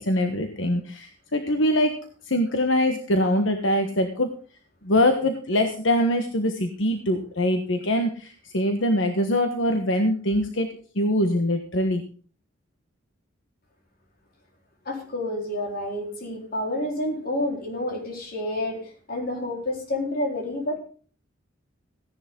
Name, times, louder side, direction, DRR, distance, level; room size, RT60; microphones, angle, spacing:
voice 1, 0.0-2.0 2.3-4.3 4.8-10.7 10.9-12.0, left 1 dB, 75° left, 6 dB, 1.4 m, -23 dB
voice 2, 14.8-20.8, left 1 dB, 50° left, 1 dB, 4.2 m, -29 dB
16.0 x 10.5 x 3.8 m, 0.41 s
head